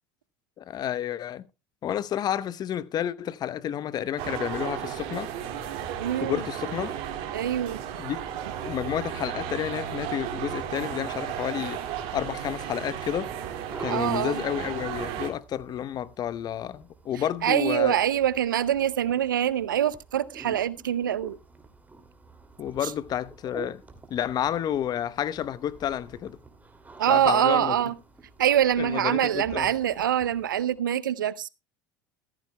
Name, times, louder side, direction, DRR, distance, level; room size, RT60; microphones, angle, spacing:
voice 1, 0.6-1.4 1.8-5.3 6.2-6.9 8.0-8.2 8.6-11.8 12.1-13.3 13.8-17.9 22.6-23.8 24.1-26.4 27.1-27.8 28.8-29.7, left 10 dB, 40° left, 0.8 m, -30 dB
sound 1, 4.2-15.3, right 9 dB, 60° right, 2.3 m, -34 dB
voice 2, 6.0-6.4 7.3-7.8 13.9-14.4 17.4-21.4 22.8-22.9 27.0-27.9 28.4-31.5, right 10 dB, 90° right, 0.5 m, -24 dB
sound 2, 11.5-30.9, right 3 dB, 15° right, 2.6 m, -48 dB
14.5 x 14.0 x 2.2 m
hypercardioid pair, 85°, 10 cm